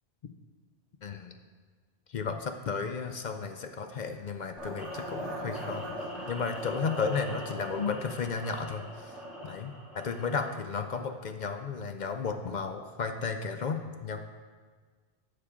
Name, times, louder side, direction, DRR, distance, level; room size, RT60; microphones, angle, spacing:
voice 1, 1.0-1.4 2.1-5.9 6.3-14.2, left 5 dB, 55° left, 6 dB, 0.5 m, -34 dB
sound 1, 4.6-10.5, equal, ahead, 2.2 m, -40 dB
11.5 x 6.7 x 3.7 m, 1.5 s
omnidirectional pair, 1.1 m